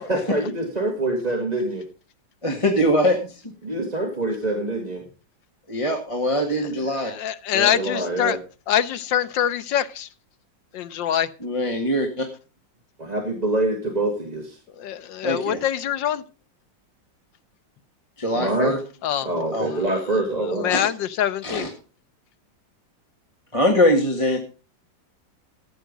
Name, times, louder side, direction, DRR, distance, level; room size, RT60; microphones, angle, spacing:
voice 1, 0.1-1.8 3.6-5.0 7.7-8.4 13.0-14.6 18.3-18.7 19.2-20.7, right 2 dB, 20° right, 1.9 m, -25 dB
voice 2, 2.4-3.4 5.7-7.1 7.5-7.7 11.4-12.3 15.2-15.6 18.2-18.8 19.5-19.7 20.7-20.8 21.4-21.7 23.5-24.4, left 1 dB, 15° left, 1.8 m, -22 dB
voice 3, 6.9-8.4 8.7-10.1 10.7-11.3 14.8-16.2 19.0-19.3 19.6-19.9 20.5-21.7, left 10 dB, 85° left, 1.5 m, -24 dB
14.0 x 9.2 x 5.2 m
omnidirectional pair, 2.0 m